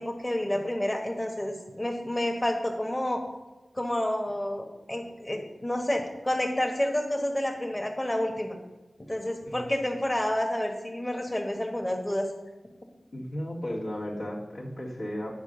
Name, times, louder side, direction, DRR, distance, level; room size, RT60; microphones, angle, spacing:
voice 1, 0.0-3.2 3.7-8.5 9.1-12.3, left 1 dB, 30° left, 2 dB, 1.3 m, -29 dB
voice 2, 13.1-15.3, equal, 85° left, -4 dB, 2.2 m, -35 dB
9.5 x 4.8 x 6.7 m, 1.1 s
cardioid pair, 40°, 0 cm